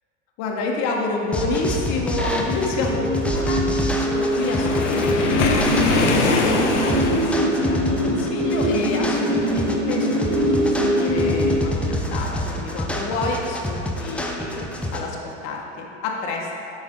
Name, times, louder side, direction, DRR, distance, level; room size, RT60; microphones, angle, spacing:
voice 1, 0.4-14.6 14.9-16.6, left 3 dB, 50° left, 0 dB, 1.3 m, -29 dB
sound 1, 1.3-15.0, equal, 5° left, 0.6 m, -28 dB
sound 2, 2.8-11.6, equal, 70° right, 1.8 m, -23 dB
Waves surf, 4.2-7.5, left 4 dB, 75° left, 0.9 m, -23 dB
8.5 x 5.5 x 3.7 m, 2.7 s
hypercardioid pair, 100°, 36 cm